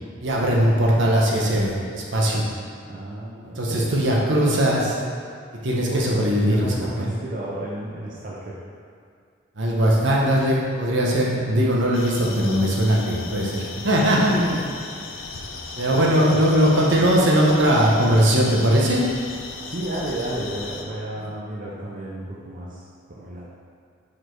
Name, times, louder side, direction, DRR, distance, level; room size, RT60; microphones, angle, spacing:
voice 1, 0.2-2.4 3.6-4.8 5.6-7.1 9.6-14.3 15.8-19.0, equal, 70° right, -3 dB, 1.0 m, -20 dB
voice 2, 2.8-4.7 5.7-8.6 14.2-15.3 15.8-16.4 19.6-23.5, right 1 dB, 40° right, -5 dB, 0.7 m, -32 dB
sound 1, 11.9-20.8, left 3 dB, 80° left, 0.6 m, -37 dB
4.9 x 4.3 x 4.6 m, 2.2 s
head